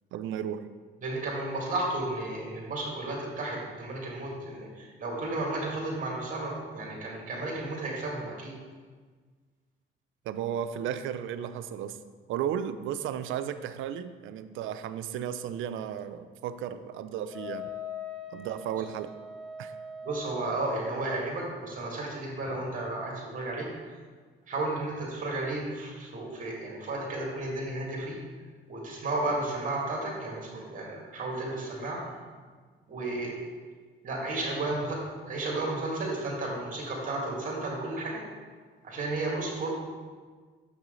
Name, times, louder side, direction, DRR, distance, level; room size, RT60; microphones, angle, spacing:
voice 1, 0.1-0.7 10.3-12.0 12.3-17.7 18.3-19.1 19.6-19.7, right 9 dB, 85° right, 11 dB, 0.4 m, -34 dB
voice 2, 1.0-8.6 20.0-23.7 24.5-28.2 28.7-32.0 32.9-33.4 34.0-35.0 35.3-38.2 38.8-39.7, right 2 dB, 40° right, -2 dB, 2.0 m, -33 dB
Wind instrument woodwind instrument, 17.3-21.0, left 3 dB, ahead, 0.9 m, -41 dB
6.3 x 6.0 x 3.8 m, 1.5 s
cardioid pair, 90°, 20 cm